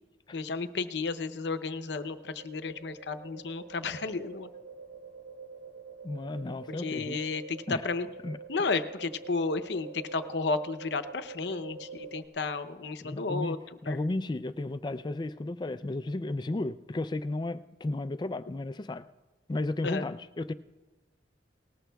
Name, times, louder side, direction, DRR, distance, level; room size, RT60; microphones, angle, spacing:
voice 1, 0.3-4.5 6.7-8.1 8.5-13.6 13.9-14.0 19.8-20.1, left 4 dB, 70° left, 11 dB, 0.7 m, -33 dB
sound 1, 2.0-12.3, right 4 dB, 85° right, 2.5 m, -46 dB
voice 2, 6.0-7.2 7.7-7.8 8.2-8.4 13.0-13.6 13.8-19.0 19.5-20.5, left 2 dB, 25° left, 13 dB, 0.4 m, -33 dB
20.0 x 19.0 x 2.3 m, 1.2 s
head